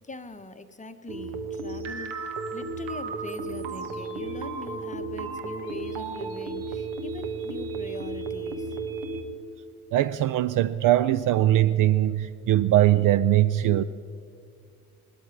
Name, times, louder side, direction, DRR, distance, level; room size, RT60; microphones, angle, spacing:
voice 1, 0.0-8.8, left 3 dB, 15° left, 0.9 m, -42 dB
sound 1, 1.1-9.2, right 3 dB, 65° right, 1.3 m, -34 dB
voice 2, 9.9-13.8, right 13 dB, 45° right, 0.5 m, -21 dB
19.0 x 13.0 x 4.6 m
figure-of-eight pair, 50°, 45 cm